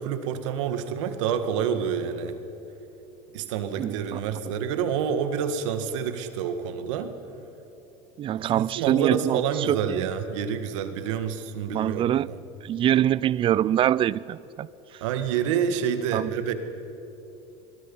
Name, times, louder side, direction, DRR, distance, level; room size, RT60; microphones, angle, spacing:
voice 1, 0.0-2.4 3.3-7.1 8.4-12.4 15.0-16.5, right 7 dB, 90° right, 1.8 m, -28 dB
voice 2, 8.2-10.0 11.7-12.3 12.6-14.7 16.1-16.3, right 11 dB, 35° right, 0.4 m, -24 dB
26.0 x 22.0 x 5.6 m
supercardioid pair, 120°, 15 cm